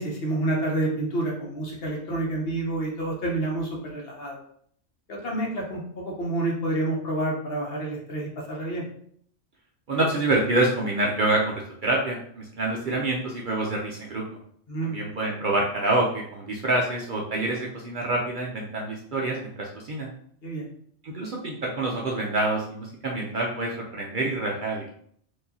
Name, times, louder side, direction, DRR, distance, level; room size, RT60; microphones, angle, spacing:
voice 1, 0.0-4.4 5.1-8.9 14.7-15.0 20.4-20.7, right 2 dB, 55° left, -2 dB, 1.1 m, -28 dB
voice 2, 9.9-14.2 14.8-20.1 21.0-24.8, right 2 dB, 55° right, -2 dB, 0.6 m, -27 dB
4.6 x 2.7 x 2.7 m, 0.63 s
omnidirectional pair, 1.3 m